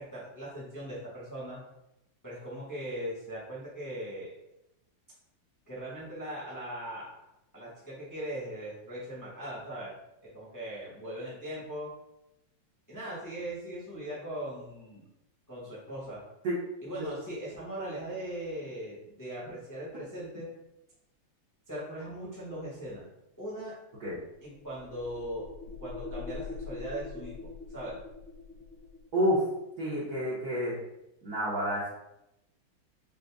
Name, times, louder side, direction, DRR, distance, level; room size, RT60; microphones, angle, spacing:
voice 1, 0.0-1.6 2.2-4.3 5.7-7.1 7.5-9.9 10.2-11.9 12.9-15.0 15.5-16.2 16.8-20.5 21.7-23.1 23.4-23.7 24.4-28.0, right 1 dB, 15° left, -8 dB, 0.8 m, -39 dB
sound 1, 24.3-29.1, left 4 dB, 90° left, 1.7 m, -43 dB
voice 2, 29.1-29.4 29.8-30.8 31.2-31.9, equal, 55° right, -9 dB, 1.3 m, -29 dB
5.1 x 2.2 x 3.4 m, 0.89 s
omnidirectional pair, 2.4 m